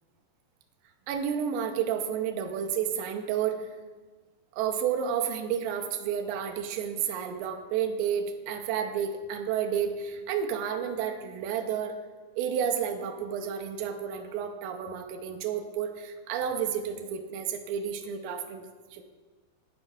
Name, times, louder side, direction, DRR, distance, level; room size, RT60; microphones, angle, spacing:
voice 1, 1.1-3.7 4.5-12.0 12.4-18.7 18.9-19.0, right 8 dB, 85° right, 4 dB, 2.0 m, -31 dB
11.5 x 4.8 x 2.6 m, 1.3 s
omnidirectional pair, 4.4 m